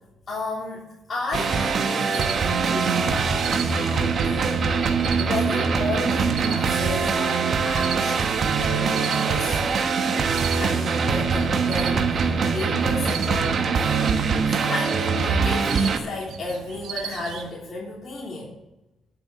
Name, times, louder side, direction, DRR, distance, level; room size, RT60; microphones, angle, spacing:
voice 1, 0.3-4.8 5.2-10.0 10.6-13.6 14.4-18.5, left 2 dB, 35° left, -5 dB, 3.3 m, -33 dB
sound 1, 1.3-16.0, right 5 dB, 55° right, 1.2 m, -23 dB
sound 2, 2.1-17.5, right 8 dB, 80° right, 1.4 m, -38 dB
11.0 x 6.9 x 6.7 m, 0.98 s
cardioid pair, 90°, 0 cm